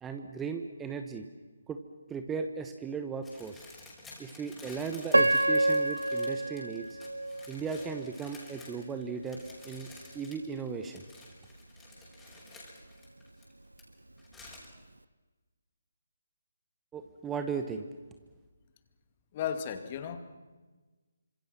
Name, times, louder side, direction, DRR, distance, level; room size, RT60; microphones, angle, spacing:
voice 1, 0.0-1.3 1.7-1.8 2.1-3.6 4.2-7.0 7.5-9.4 9.6-11.0 16.9-17.9, right 5 dB, 10° right, 7 dB, 1.2 m, -37 dB
sound 1, 3.2-13.8 14.2-14.7, left 2 dB, 5° left, 5.9 m, -52 dB
Piano, 5.1-8.1 8.7-8.8 9.5-9.7, right 1 dB, 80° right, 1.0 m, -28 dB
voice 2, 19.3-20.2, left 8 dB, 30° left, 8 dB, 2.5 m, -34 dB
28.5 x 26.0 x 6.1 m, 1.3 s
figure-of-eight pair, 145°, 0 cm